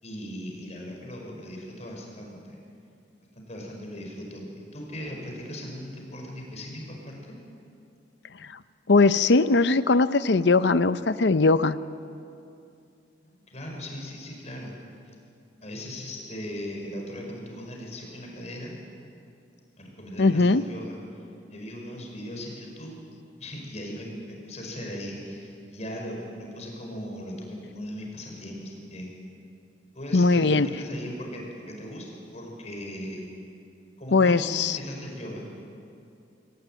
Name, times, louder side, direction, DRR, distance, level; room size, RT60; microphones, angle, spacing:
voice 1, 0.0-2.6 3.4-7.3 13.2-14.7 15.6-18.8 19.8-23.0 23.4-29.1 29.9-33.3 34.0-35.5, equal, 40° left, 0 dB, 5.2 m, -38 dB
voice 2, 8.9-11.8 20.2-20.6 30.1-30.7 34.1-34.8, left 3 dB, 70° left, 14 dB, 0.7 m, -20 dB
24.0 x 16.5 x 9.1 m, 2.6 s
head